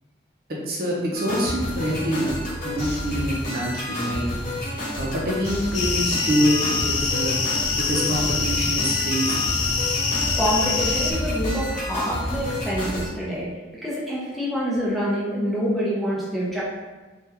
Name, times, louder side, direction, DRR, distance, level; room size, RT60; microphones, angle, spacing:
voice 1, 0.6-4.3 4.9-7.4 7.8-9.5, equal, 50° right, -3 dB, 0.6 m, -26 dB
sound 1, 1.1-13.1, left 1 dB, 40° left, 0.9 m, -30 dB
sound 2, 5.7-11.1, left 4 dB, 80° left, 0.5 m, -25 dB
voice 2, 10.4-13.5 13.8-16.6, equal, ahead, -8 dB, 0.6 m, -26 dB
3.4 x 2.2 x 2.8 m, 1.3 s
head